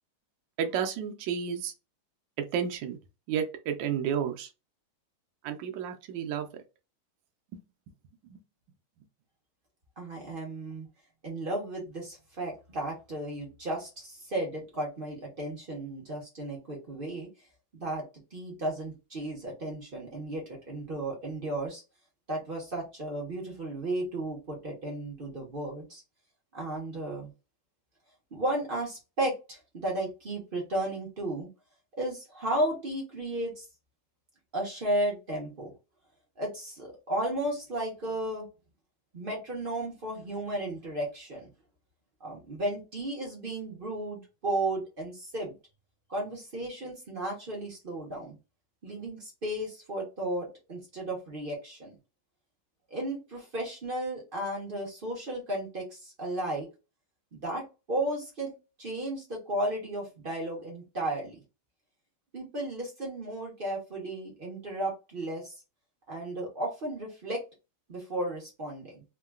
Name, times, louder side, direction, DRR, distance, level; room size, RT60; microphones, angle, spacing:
voice 1, 0.6-1.7 2.5-3.0 3.3-4.5 5.4-6.5 8.3-8.4, right 8 dB, 70° right, 1.2 m, -31 dB
voice 2, 10.0-10.9 11.2-17.3 17.7-18.0 18.3-21.8 22.3-26.0 26.5-27.3 28.3-31.5 31.9-33.6 34.5-35.7 36.4-38.5 39.1-41.5 42.2-45.5 46.1-48.4 48.8-52.0 52.9-56.7 57.4-58.5 58.8-61.4 62.3-65.6 66.1-67.4 67.9-69.0, right 1 dB, 45° right, 0.6 m, -34 dB
3.6 x 2.2 x 2.3 m
omnidirectional pair, 2.3 m